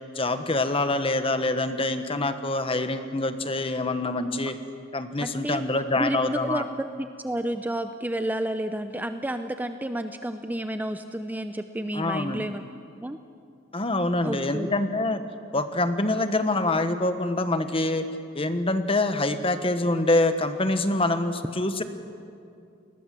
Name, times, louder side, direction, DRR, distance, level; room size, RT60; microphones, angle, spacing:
voice 1, 0.1-4.5 4.9-6.7 11.9-12.4 13.7-15.2 15.5-18.0 18.3-21.8, left 2 dB, 25° left, 9 dB, 1.3 m, -25 dB
voice 2, 5.2-5.7 6.0-12.6 13.0-13.2 14.2-14.7, right 1 dB, 10° right, 8 dB, 0.7 m, -31 dB
29.5 x 20.5 x 7.6 m, 2.5 s
head